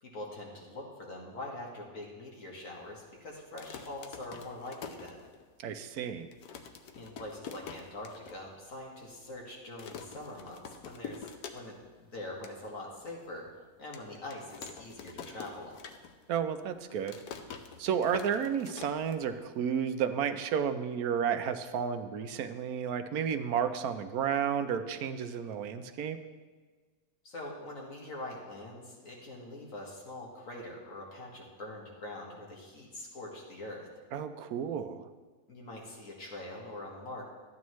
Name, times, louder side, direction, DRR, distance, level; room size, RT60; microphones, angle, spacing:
voice 1, 0.0-5.2 6.9-13.5 13.8-15.8 27.2-33.9 35.5-37.2, left 1 dB, 60° left, -2 dB, 1.9 m, -44 dB
sound 1, 3.4-5.7 6.0-6.1 6.3-8.4 8.7-8.8 9.0-9.4 9.8-11.9 12.2-12.6 13.1-13.2 13.9-16.4 16.6-19.6, left 6 dB, 85° left, 1.2 m, -46 dB
voice 2, 5.6-6.3 16.3-17.2 17.8-26.2 34.1-35.1, right 8 dB, 75° right, 9 dB, 1.1 m, -32 dB
12.5 x 9.5 x 3.1 m, 1.4 s
omnidirectional pair, 1.6 m